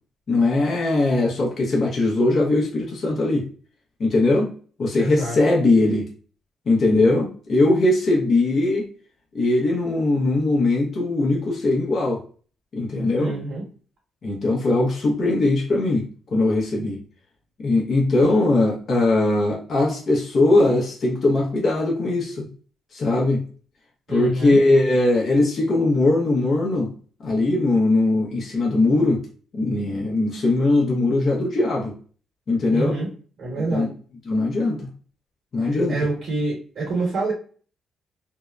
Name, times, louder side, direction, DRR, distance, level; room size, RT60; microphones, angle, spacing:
voice 1, 0.3-3.5 4.0-4.5 4.8-6.1 6.7-8.9 9.3-12.2 12.7-13.3 14.2-17.0 17.6-22.5 22.9-23.4 24.1-26.9 27.2-29.2 29.5-32.0 32.5-33.0 33.7-33.9 34.3-34.8 35.5-36.0, left 2 dB, 50° left, -2 dB, 0.7 m, -20 dB
voice 2, 4.9-5.4 13.2-13.6 18.2-18.4 24.1-24.6 32.7-33.1 33.4-33.9 35.6-37.3, right 2 dB, 65° right, -4 dB, 1.1 m, -27 dB
2.7 x 2.0 x 2.3 m, 0.41 s
cardioid pair, 90°, 0 cm